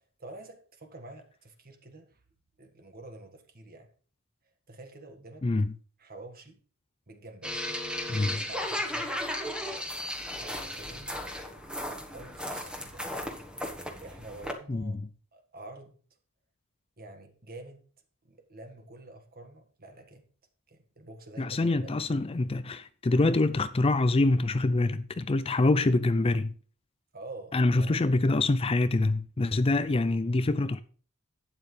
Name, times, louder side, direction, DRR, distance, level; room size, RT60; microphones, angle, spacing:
voice 1, 0.2-2.2 2.6-3.9 4.7-5.5 6.0-6.6 7.1-7.6 8.2-9.5 10.4-11.2 12.1-13.2 14.0-15.0 15.3-16.0 17.0-17.8 18.2-20.2 20.7-22.0 27.1-28.0, right 2 dB, 45° right, 1.7 m, -47 dB
voice 2, 5.4-5.7 8.1-8.4 14.7-14.9 21.4-26.5 27.5-30.8, left 2 dB, 25° left, 0.4 m, -25 dB
sound 1, 7.4-14.5, left 1 dB, 5° right, 1.4 m, -35 dB
12.0 x 9.2 x 3.3 m
head